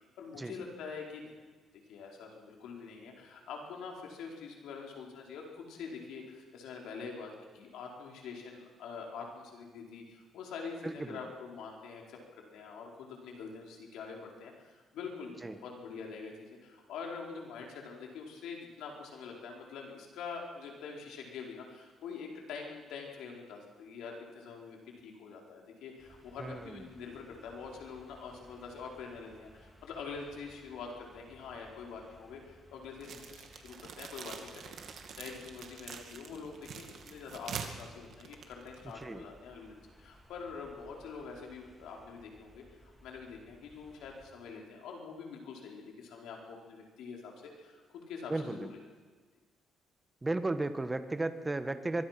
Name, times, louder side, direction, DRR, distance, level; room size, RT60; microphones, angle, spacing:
voice 1, 0.0-1.4 1.9-48.8, left 5 dB, 85° left, 0 dB, 4.7 m, -45 dB
voice 2, 10.8-11.2 15.4-15.6 26.4-26.8 39.0-39.2 48.3-48.7 50.2-52.1, right 2 dB, 20° right, 9 dB, 1.5 m, -34 dB
sound 1, 26.0-44.3, left 1 dB, ahead, 3.6 m, -60 dB
sound 2, 33.0-39.1, right 6 dB, 65° right, 2.4 m, -45 dB
23.5 x 22.5 x 6.1 m, 1.4 s
cardioid pair, 90°, 0 cm